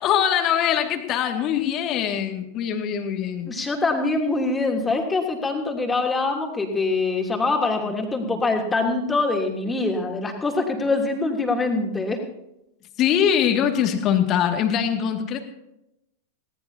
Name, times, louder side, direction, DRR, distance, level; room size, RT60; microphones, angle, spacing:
voice 1, 0.0-3.5 13.0-15.4, left 9 dB, 35° left, 5 dB, 2.2 m, -22 dB
voice 2, 3.5-12.2, left 3 dB, 15° left, 2 dB, 3.1 m, -24 dB
20.5 x 18.5 x 2.9 m, 0.84 s
figure-of-eight pair, 90°, 0 cm